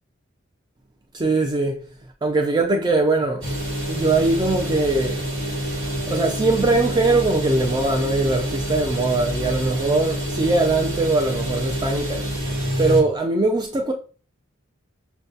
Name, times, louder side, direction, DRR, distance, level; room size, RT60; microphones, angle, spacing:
voice 1, 1.1-1.8 2.2-3.5 3.9-5.2 6.1-12.2 12.8-13.9, right 2 dB, 20° right, 0.3 m, -21 dB
sound 1, 3.4-13.0, equal, 70° right, 1.3 m, -27 dB
6.1 x 2.2 x 2.6 m
head